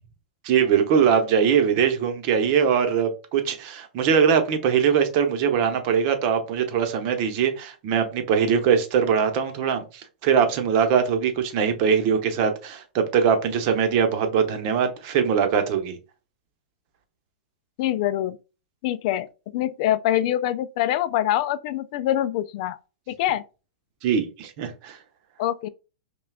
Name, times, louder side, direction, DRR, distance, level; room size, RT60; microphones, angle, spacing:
voice 1, 0.4-16.0 24.0-25.0, right 7 dB, 45° right, 0.9 m, -22 dB
voice 2, 17.8-18.4 18.8-19.3 19.5-22.8 23.1-23.4 25.4-25.7, left 12 dB, 50° left, 0.3 m, -24 dB
5.5 x 2.3 x 2.3 m
hypercardioid pair, 135°, 4 cm